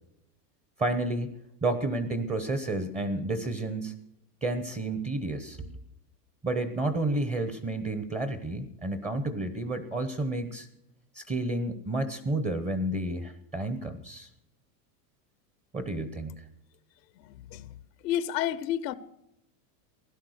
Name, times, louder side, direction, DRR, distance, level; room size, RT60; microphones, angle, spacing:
voice 1, 0.8-1.3 1.6-3.9 4.4-5.8 6.4-10.7 11.1-14.3 15.7-16.4, right 2 dB, 15° right, 0.9 m, -31 dB
voice 2, 17.2-17.8 18.0-18.9, left 11 dB, 85° left, 1.0 m, -31 dB
16.5 x 11.5 x 6.4 m
supercardioid pair, 145°, 48 cm